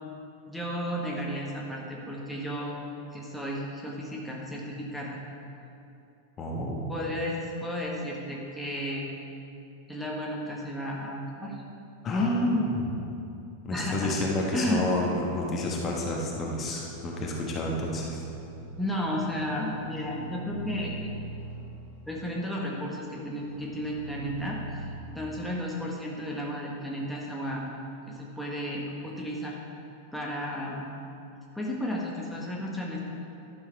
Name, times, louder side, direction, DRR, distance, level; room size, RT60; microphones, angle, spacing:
voice 1, 0.5-2.8 3.1-5.2 6.9-9.1 9.9-11.5 13.7-14.1 14.5-14.8 18.8-20.9 22.1-24.9 25.1-27.7 28.1-29.5 30.1-30.9 31.5-33.0, equal, ahead, -4 dB, 1.4 m, -33 dB
voice 2, 6.4-6.8 12.0-13.0 13.6-18.2, left 1 dB, 25° left, -2 dB, 1.4 m, -29 dB
sound 1, 16.8-24.9, right 2 dB, 65° left, 2.1 m, -42 dB
11.5 x 7.2 x 4.6 m, 2.7 s
figure-of-eight pair, 90°, 0 cm